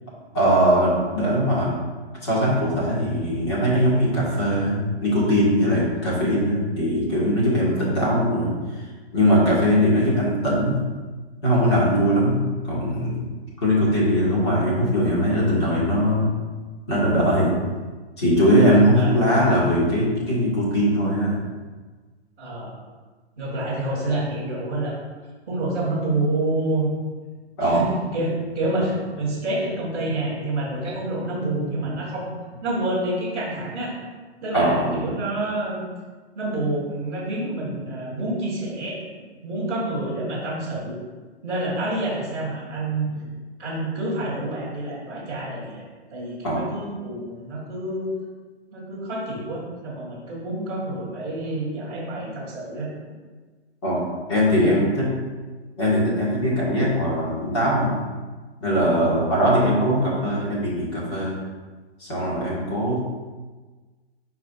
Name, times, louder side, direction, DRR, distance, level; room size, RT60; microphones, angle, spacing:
voice 1, 0.3-1.7 2.2-8.8 9.1-10.8 11.4-13.2 13.6-16.3 16.9-17.5 18.2-21.4 27.6-27.8 34.5-34.9 46.4-46.6 53.8-54.0 54.3-55.0 55.8-57.9 58.6-61.3 62.0-63.0, equal, 25° left, -7 dB, 1.6 m, -20 dB
voice 2, 18.9-19.3 22.4-22.7 23.4-25.0 25.5-26.9 27.6-33.9 34.4-35.8 36.3-39.0 39.4-41.0 41.4-43.1 43.6-45.8 46.1-48.1 48.7-52.9 54.5-54.7, right 2 dB, 10° right, -13 dB, 1.2 m, -28 dB
9.2 x 4.9 x 2.4 m, 1.3 s
hypercardioid pair, 175°, 34 cm